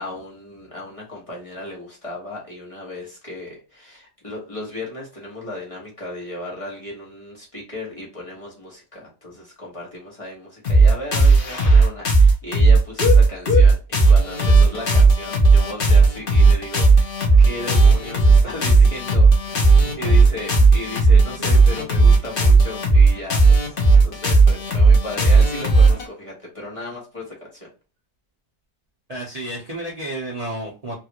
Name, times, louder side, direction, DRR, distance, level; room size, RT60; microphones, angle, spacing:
voice 1, 0.0-23.8 24.0-27.7, left 1 dB, 20° left, -4 dB, 1.1 m, -35 dB
sound 1, 10.6-26.1, right 3 dB, 45° left, 0.7 m, -14 dB
voice 2, 29.1-30.9, right 1 dB, 60° right, -5 dB, 0.4 m, -31 dB
3.2 x 2.4 x 2.9 m, 0.33 s
omnidirectional pair, 1.9 m